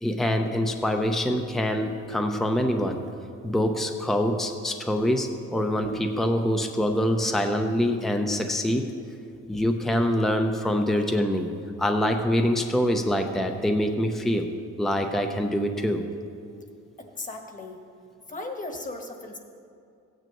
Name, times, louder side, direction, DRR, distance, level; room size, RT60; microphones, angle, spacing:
voice 1, 0.0-3.1 3.4-8.9 9.5-11.5 11.8-14.5 14.8-16.1, equal, ahead, 4 dB, 0.7 m, -25 dB
voice 2, 17.0-17.8 18.3-19.4, left 2 dB, 25° left, 3 dB, 1.4 m, -36 dB
15.5 x 9.2 x 3.0 m, 2.5 s
cardioid pair, 90°, 30 cm